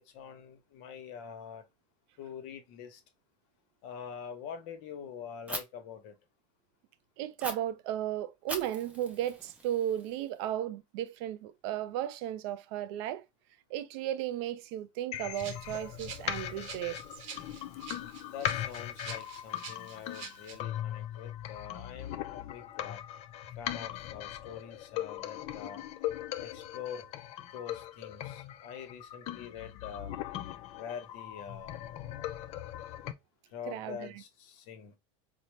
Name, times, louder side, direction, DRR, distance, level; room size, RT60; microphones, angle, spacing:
voice 1, 0.0-1.6 2.2-3.0 3.8-6.2 18.2-23.0 23.5-25.8 26.4-27.1 27.5-30.1 30.7-31.9 33.5-35.0, left 7 dB, 60° left, 0.9 m, -45 dB
Fire, 5.5-5.6 7.4-7.5 8.5-10.4, right 1 dB, 10° right, 0.6 m, -41 dB
voice 2, 7.2-13.3 13.7-17.0 33.7-34.2, right 12 dB, 55° right, 0.4 m, -35 dB
sound 1, 15.1-33.1, left 12 dB, 40° left, 0.4 m, -39 dB
Rattle (instrument), 15.3-20.6, right 7 dB, 75° right, 0.8 m, -48 dB
4.2 x 2.0 x 3.1 m
supercardioid pair, 135°, 17 cm